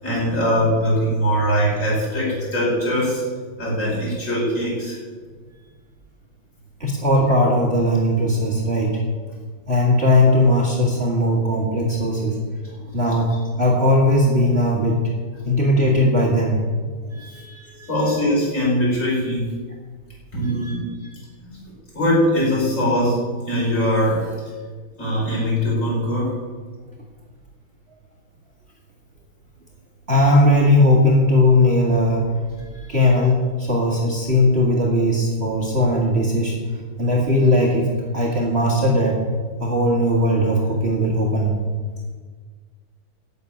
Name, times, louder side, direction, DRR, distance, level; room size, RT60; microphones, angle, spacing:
voice 1, 0.0-3.2 3.6-5.0 12.6-12.8 17.1-17.2 17.9-19.5 20.3-20.9 21.9-24.3 25.0-26.3, equal, 35° left, -5 dB, 5.3 m, -21 dB
voice 2, 6.8-9.0 9.7-12.4 12.9-15.0 15.4-16.6 17.1-17.9 18.2-18.3 20.4-20.7 21.0-21.1 21.4-21.6 30.1-32.3 32.7-36.5 37.0-37.9 38.1-39.2 39.6-41.6, left 1 dB, 30° right, -2 dB, 2.1 m, -18 dB
12.0 x 7.2 x 9.1 m, 1.5 s
omnidirectional pair, 2.2 m